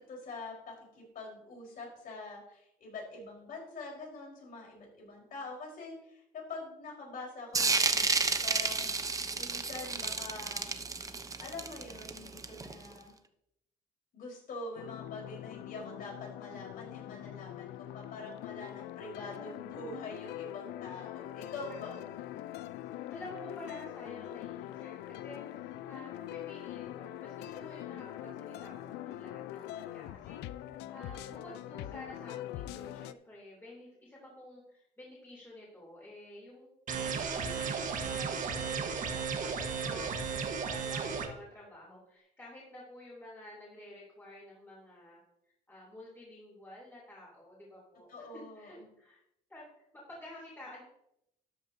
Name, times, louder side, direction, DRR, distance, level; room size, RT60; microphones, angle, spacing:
voice 1, 0.1-9.0 9.3-10.7 11.4-13.1 14.1-22.0 39.8-40.1 48.1-48.9, left 3 dB, 55° left, -2 dB, 4.6 m, -45 dB
sound 1, 7.5-12.9, right 4 dB, 20° right, 0.8 m, -31 dB
sound 2, 14.8-33.1, left 13 dB, 85° left, 0.5 m, -43 dB
voice 2, 21.7-22.2 23.1-36.7 37.0-45.2 45.7-49.2 49.5-50.8, left 1 dB, 15° left, -6 dB, 3.4 m, -51 dB
sound 3, 36.9-41.3, right 6 dB, 50° right, 1.4 m, -34 dB
13.0 x 9.1 x 2.8 m, 0.79 s
cardioid pair, 110°, 17 cm